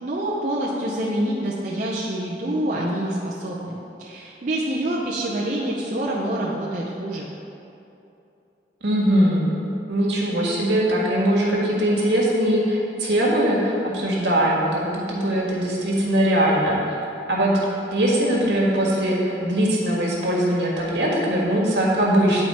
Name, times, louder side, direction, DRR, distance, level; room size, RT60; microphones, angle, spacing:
voice 1, 0.0-3.7 4.0-7.3, right 1 dB, 45° right, -6 dB, 0.7 m, -26 dB
voice 2, 8.8-9.4 9.9-16.8 17.3-17.6 17.9-22.4, right 1 dB, 75° right, -4 dB, 1.6 m, -21 dB
10.0 x 4.4 x 4.3 m, 2.8 s
head